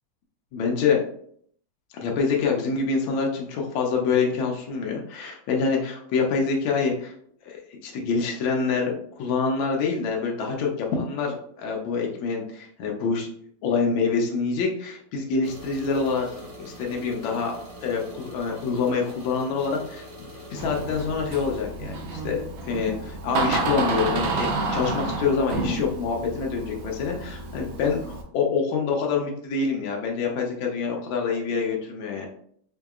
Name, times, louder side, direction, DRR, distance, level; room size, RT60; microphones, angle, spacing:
voice 1, 0.5-1.0 1.9-7.1 7.4-13.3 13.6-32.3, left 5 dB, 80° left, 0 dB, 1.4 m, -26 dB
sound 1, 15.4-21.6, right 1 dB, 40° right, 1.0 m, -43 dB
Door, 20.6-28.2, right 3 dB, 90° right, 1.5 m, -30 dB
4.4 x 2.7 x 2.3 m, 0.63 s
omnidirectional pair, 2.1 m